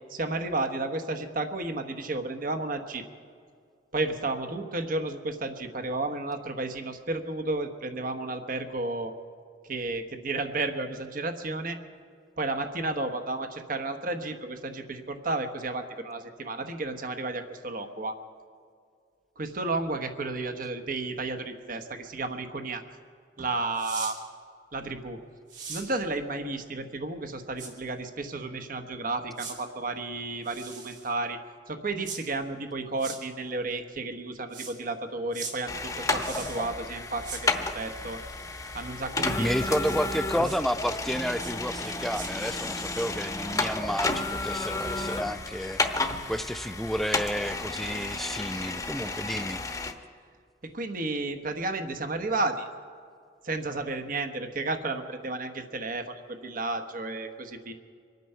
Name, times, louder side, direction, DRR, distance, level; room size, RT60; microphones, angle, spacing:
voice 1, 0.1-3.0 3.9-9.1 9.7-11.8 12.4-18.2 19.4-22.8 23.4-24.2 24.7-25.2 25.7-31.4 31.7-38.2 38.7-39.8 41.7-41.8 50.6-52.7 53.4-57.7, right 2 dB, 50° right, 7 dB, 1.1 m, -32 dB
sound 1, 23.7-24.1 25.5-25.9 27.6-27.7 29.4-29.5 30.4-31.1 32.0-32.2 33.0-33.2 34.5-34.7 35.3-35.5 36.2-36.7 37.2-37.4 39.8-40.0 40.4-40.6 41.4-41.5 41.8-42.3, right 5 dB, 85° right, 3.0 m, -39 dB
sound 2, 35.7-49.9, left 3 dB, 20° left, 1.0 m, -32 dB
voice 2, 39.4-45.8 46.3-49.6, equal, ahead, 13 dB, 0.3 m, -31 dB
25.0 x 9.3 x 5.6 m, 2.1 s
head